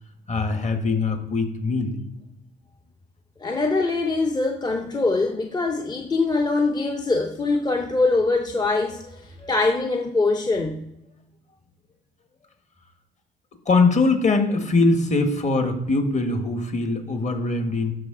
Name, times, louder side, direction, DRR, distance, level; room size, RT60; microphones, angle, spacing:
voice 1, 0.3-2.0 13.7-17.9, left 3 dB, 35° left, 1.5 m, -22 dB
voice 2, 3.4-10.9, left 3 dB, 20° left, 0.7 m, -23 dB
11.5 x 4.5 x 3.8 m
cardioid pair, 90°, 20 cm